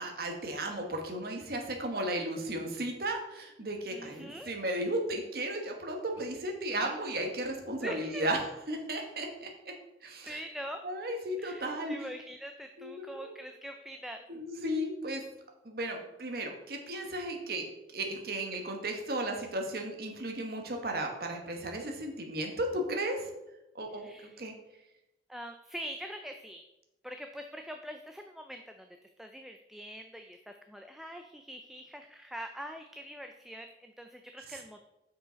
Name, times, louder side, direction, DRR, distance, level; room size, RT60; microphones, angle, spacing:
voice 1, 0.0-8.4 8.7-9.7 10.0-10.4 10.8-11.9 12.8-13.3 14.3-15.2 15.6-17.6 17.9-23.3 23.7-24.1 24.4-24.5, right 1 dB, 55° right, 3 dB, 1.3 m, -35 dB
voice 2, 3.9-4.5 7.8-8.3 10.2-10.8 11.4-14.2 23.9-24.4 25.3-26.6 27.0-28.9 29.2-34.8, equal, ahead, 5 dB, 0.3 m, -43 dB
6.3 x 5.1 x 5.0 m, 0.92 s
head